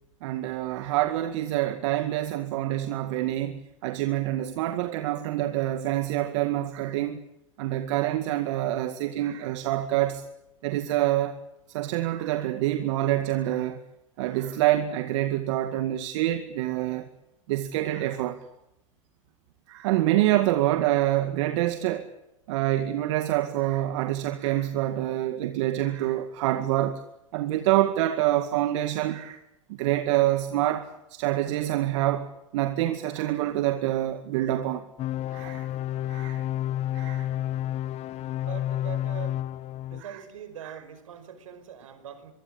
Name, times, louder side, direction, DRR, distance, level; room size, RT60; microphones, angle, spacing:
voice 1, 0.2-7.2 7.6-10.2 10.6-11.3 11.7-13.8 14.2-17.1 17.5-18.4 19.7-22.1 22.5-27.0 27.3-29.4 29.8-32.3 32.5-34.8 35.3-35.7 36.1-36.4 36.9-37.3 40.6-40.7, right 14 dB, 65° right, 2.1 m, -26 dB
sound 1, 35.0-40.0, left 12 dB, 40° left, 1.1 m, -30 dB
voice 2, 36.2-42.3, right 8 dB, 80° right, 5.3 m, -44 dB
25.0 x 23.0 x 8.8 m
hypercardioid pair, 95°, 17 cm